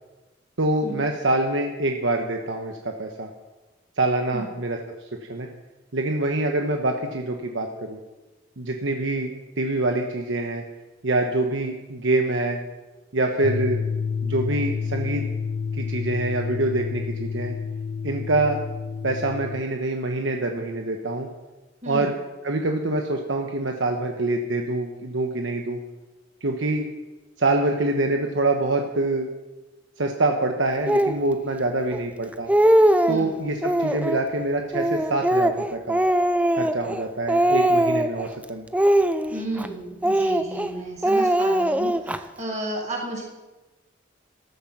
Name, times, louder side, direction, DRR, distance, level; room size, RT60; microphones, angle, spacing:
voice 1, 0.6-3.3 4.0-4.8 5.3-5.5 5.9-8.0 8.6-10.6 11.0-12.6 13.1-13.8 14.2-15.2 15.7-17.6 18.0-18.6 19.0-21.3 21.9-22.2 22.4-25.8 26.4-26.9 27.4-29.3 30.0-32.5 33.1-36.0 36.6-38.6, right 2 dB, 75° right, 3 dB, 1.1 m, -25 dB
sound 1, 13.4-19.6, left 5 dB, 60° left, 0.4 m, -29 dB
Speech, 30.9-31.2 31.9-32.0 32.3-33.2 33.6-34.2 34.7-37.0 37.3-38.2 38.7-39.7 40.0-40.7 41.0-42.2, right 1 dB, 5° right, 0.5 m, -21 dB
voice 2, 39.3-43.2, right 1 dB, 40° right, -2 dB, 6.1 m, -32 dB
14.0 x 13.0 x 6.1 m, 1.1 s
head